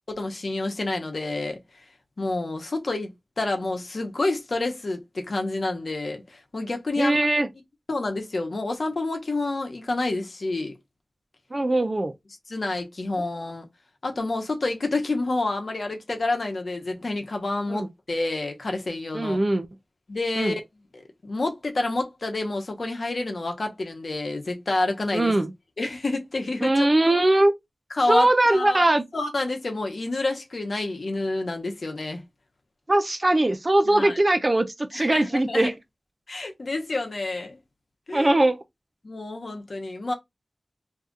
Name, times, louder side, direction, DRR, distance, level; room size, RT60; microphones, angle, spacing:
voice 1, 0.2-1.6 2.2-7.2 7.9-10.8 12.5-13.7 14.0-19.4 20.1-20.6 20.9-25.4 25.8-27.2 27.9-28.8 29.1-32.2 33.9-34.2 34.9-35.7 36.3-37.6 38.1-38.3 39.0-40.1, left 2 dB, 65° left, 0.9 m, -28 dB
voice 2, 7.0-7.5 11.5-12.1 13.2-13.3 17.7-17.9 19.1-19.7 20.4-20.6 25.1-25.5 26.6-27.5 28.1-29.0 32.9-35.7 38.1-38.6, right 1 dB, 40° right, 0.5 m, -21 dB
2.7 x 2.4 x 3.6 m
wide cardioid pair, 60°, 0 cm